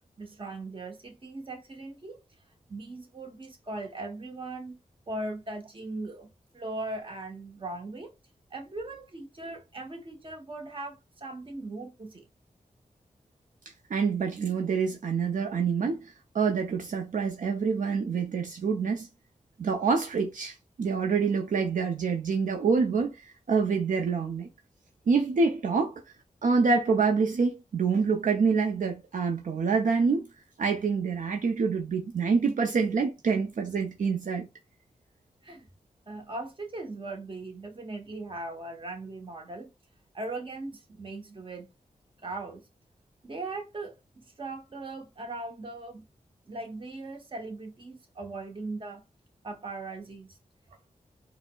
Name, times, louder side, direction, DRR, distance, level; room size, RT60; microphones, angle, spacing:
voice 1, 0.2-2.2 2.7-4.8 5.1-8.1 8.5-12.3 35.4-35.7 36.1-39.7 40.1-41.7 42.2-42.6 43.2-46.0 46.5-49.0 49.4-50.4, right 2 dB, 35° right, 0.9 m, -39 dB
voice 2, 13.9-19.1 19.6-24.5 25.1-26.0 26.4-30.3 30.6-34.5, right 5 dB, 70° right, 0.5 m, -26 dB
4.1 x 2.0 x 2.2 m
cardioid pair, 55°, 14 cm